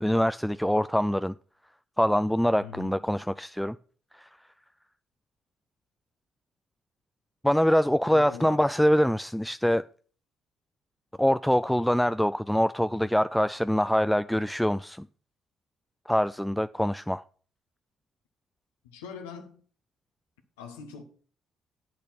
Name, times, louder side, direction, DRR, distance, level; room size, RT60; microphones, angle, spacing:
voice 1, 0.0-1.4 2.0-3.8 4.1-4.3 7.4-9.8 11.2-15.1 16.1-17.2, equal, 5° left, 0.3 m, -24 dB
voice 2, 2.6-3.0 8.1-8.7 18.8-19.6 20.6-21.0, left 6 dB, 90° left, 1.3 m, -42 dB
8.4 x 6.7 x 5.9 m
hypercardioid pair, 50°, 0 cm